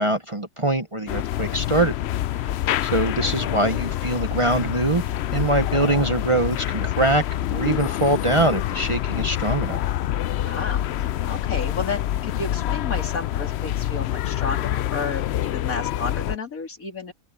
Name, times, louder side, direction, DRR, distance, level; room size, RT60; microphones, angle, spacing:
voice 1, 0.0-1.9 2.8-7.2 7.5-9.8, right 2 dB, 25° right, 0.9 m, -23 dB
sound 1, 1.1-16.4, left 12 dB, 65° left, 0.7 m, -26 dB
Bowed string instrument, 4.6-5.5, right 10 dB, 65° right, 2.4 m, -42 dB
voice 2, 10.5-17.1, left 4 dB, 85° left, 3.3 m, -32 dB
open air
omnidirectional pair, 1.4 m